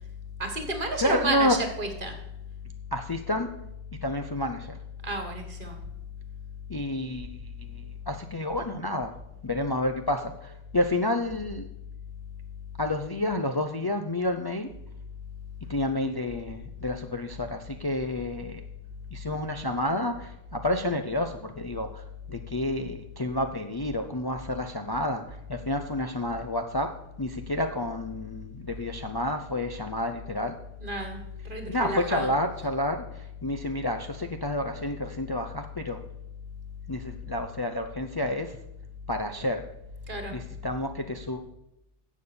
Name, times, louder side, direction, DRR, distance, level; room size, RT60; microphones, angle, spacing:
voice 1, 0.4-2.2 5.0-5.8 30.8-32.3 40.1-40.4, right 1 dB, 50° right, 5 dB, 1.9 m, -31 dB
voice 2, 1.0-1.6 2.9-3.5 4.0-4.8 6.7-9.1 9.4-11.7 12.8-14.7 15.7-18.6 19.1-30.6 31.7-36.0 36.9-38.6 39.1-39.6 40.3-41.4, left 1 dB, 30° left, 5 dB, 0.5 m, -30 dB
10.5 x 7.4 x 7.0 m, 0.84 s
omnidirectional pair, 1.1 m